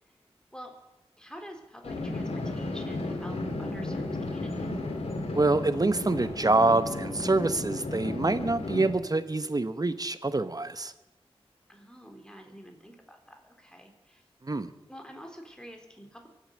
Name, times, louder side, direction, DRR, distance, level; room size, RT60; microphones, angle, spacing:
voice 1, 1.2-4.7 11.7-14.2 14.9-16.3, equal, 5° left, 3 dB, 3.7 m, -47 dB
sound 1, 1.8-8.9, left 2 dB, 90° left, 2.4 m, -34 dB
voice 2, 5.3-10.9 14.4-14.7, right 2 dB, 35° right, 12 dB, 1.1 m, -26 dB
23.5 x 8.1 x 6.6 m, 1.0 s
cardioid pair, 45°, 10 cm